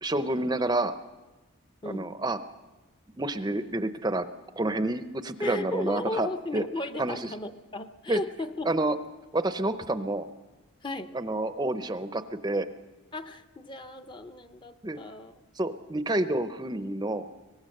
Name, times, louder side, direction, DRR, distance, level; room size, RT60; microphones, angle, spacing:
voice 1, 0.0-1.0 1.8-2.4 3.2-4.3 4.6-6.3 6.5-6.6 7.0-7.2 8.1-8.2 8.7-9.0 9.3-10.3 11.1-12.7 14.8-15.0 15.6-17.3, right 2 dB, 20° right, 10 dB, 0.6 m, -28 dB
voice 2, 5.4-8.7 10.8-11.1 13.1-15.3 16.3-16.4, left 2 dB, 20° left, 9 dB, 0.7 m, -35 dB
23.5 x 18.5 x 6.6 m, 1.2 s
head